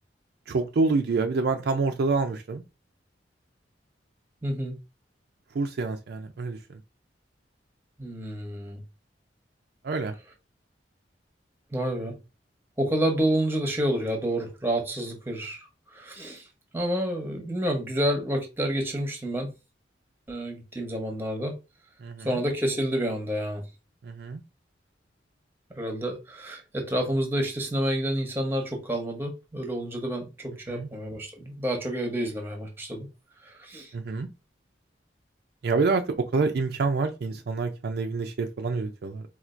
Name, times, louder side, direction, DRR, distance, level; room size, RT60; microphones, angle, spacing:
voice 1, 0.5-2.6 5.5-6.6 9.8-10.1 22.0-22.3 24.0-24.4 30.7-30.9 33.9-34.3 35.6-36.0 36.3-39.2, right 4 dB, 60° right, 0.4 m, -27 dB
voice 2, 4.4-4.8 8.0-8.8 11.7-12.1 12.8-15.7 15.9-16.4 16.7-19.5 20.3-21.5 22.2-23.6 25.7-33.1 33.4-33.9, right 1 dB, 10° right, 0.8 m, -29 dB
4.3 x 2.3 x 2.5 m
head